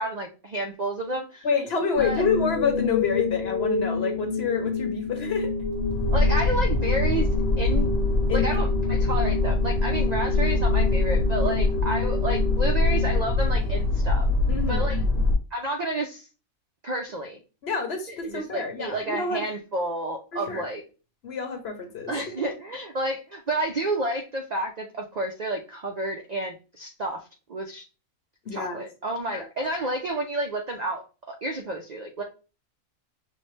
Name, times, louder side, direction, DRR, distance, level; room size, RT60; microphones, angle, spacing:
voice 1, 0.0-1.5 2.0-2.2 6.1-7.3 7.6-7.9 8.3-14.3 14.7-15.0 15.5-16.3 16.8-17.4 18.2-20.8 22.1-27.9 28.5-32.2, right 1 dB, 65° right, 3 dB, 0.4 m, -30 dB
voice 2, 1.4-5.5 8.3-8.6 11.4-11.6 14.5-15.2 17.6-19.4 20.5-20.7 21.2-22.1 28.5-28.8 29.3-29.4, left 5 dB, 55° left, 4 dB, 1.0 m, -28 dB
sound 1, 2.0-14.0, left 4 dB, 35° right, 2.0 m, -30 dB
sound 2, 5.4-15.4, left 2 dB, 70° left, 1.2 m, -24 dB
6.3 x 2.1 x 3.1 m, 0.33 s
omnidirectional pair, 1.4 m